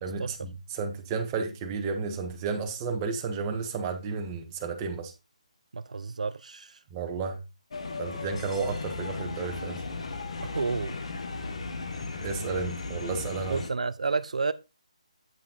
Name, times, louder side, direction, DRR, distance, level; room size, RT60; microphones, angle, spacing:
voice 1, 0.0-5.1 6.9-7.4 8.0-9.8 12.2-13.6, right 5 dB, 20° right, 1.3 m, -32 dB
voice 2, 5.7-6.8 10.4-11.0 13.5-14.5, right 4 dB, 75° right, 0.6 m, -30 dB
sound 1, 7.7-13.7, left 3 dB, 60° left, 1.5 m, -36 dB
9.0 x 5.5 x 4.0 m
hypercardioid pair, 165°, 4 cm